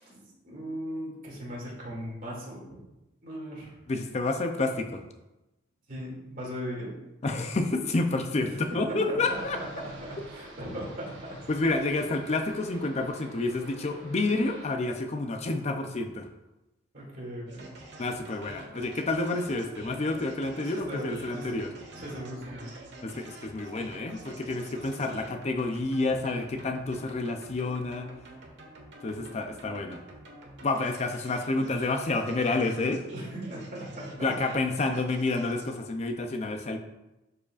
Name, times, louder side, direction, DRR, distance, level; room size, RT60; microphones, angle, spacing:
voice 1, 0.0-2.6 3.2-3.8 5.9-6.9 8.5-9.4 9.8-11.4 16.9-17.7 20.6-21.6 21.9-22.8 33.1-34.3, equal, 45° right, -4 dB, 2.4 m, -38 dB
voice 2, 3.9-5.0 7.2-9.6 11.5-16.3 18.0-21.7 23.0-28.1 29.0-30.0 30.6-33.1 34.2-36.8, left 2 dB, 35° left, 6 dB, 0.5 m, -29 dB
sound 1, 9.2-14.7, right 1 dB, 85° right, 1.7 m, -48 dB
sound 2, 17.5-35.8, right 2 dB, 65° right, 1.3 m, -48 dB
11.5 x 4.9 x 2.4 m, 0.98 s
head